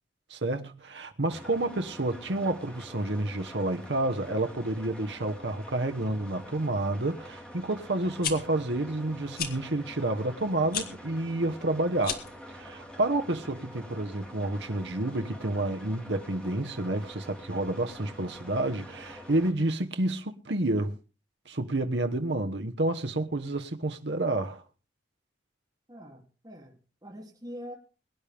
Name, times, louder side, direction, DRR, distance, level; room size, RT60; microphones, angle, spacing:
voice 1, 0.3-12.2 12.5-21.0 21.5-24.6, right 2 dB, 65° right, 1.1 m, -29 dB
sound 1, 1.3-19.5, equal, 5° left, 2.7 m, -46 dB
sound 2, 8.0-8.3 9.3-9.5 10.7-10.9 12.0-12.4, left 7 dB, 55° left, 1.9 m, -32 dB
voice 2, 25.9-27.7, equal, 20° right, 2.8 m, -44 dB
22.5 x 10.5 x 3.4 m
head